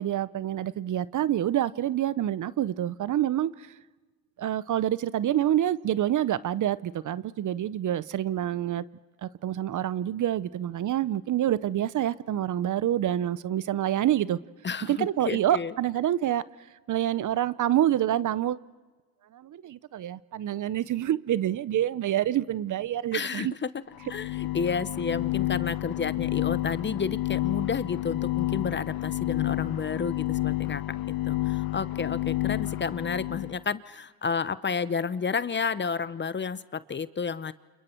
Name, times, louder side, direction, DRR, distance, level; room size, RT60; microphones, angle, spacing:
voice 1, 0.0-3.7 4.4-8.8 9.2-14.4 14.8-16.4 16.9-18.6 19.3-23.5, right 12 dB, 45° right, 18 dB, 0.7 m, -27 dB
voice 2, 14.6-15.7 23.1-23.7 24.1-30.8 31.3-37.5, left 5 dB, 25° left, 16 dB, 0.8 m, -31 dB
sound 1, 23.9-33.6, left 17 dB, 60° left, 0.7 m, -30 dB
29.5 x 28.0 x 4.5 m, 1.3 s
supercardioid pair, 70°, 41 cm